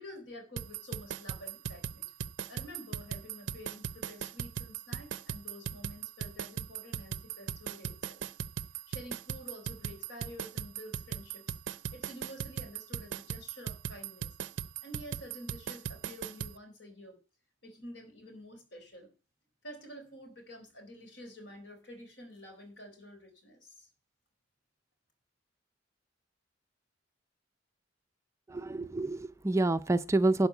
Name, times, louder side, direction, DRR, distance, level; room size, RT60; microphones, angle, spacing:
voice 1, 0.0-2.1 2.5-8.2 8.9-11.5 11.9-14.3 14.8-17.2 17.6-19.1 19.6-23.9, equal, 70° left, 4.0 m, -49 dB
sound 1, 0.6-16.5, right 8 dB, 70° right, 0.5 m, -38 dB
voice 2, 28.5-30.5, right 2 dB, 15° right, 0.4 m, -28 dB
11.5 x 4.6 x 8.1 m
head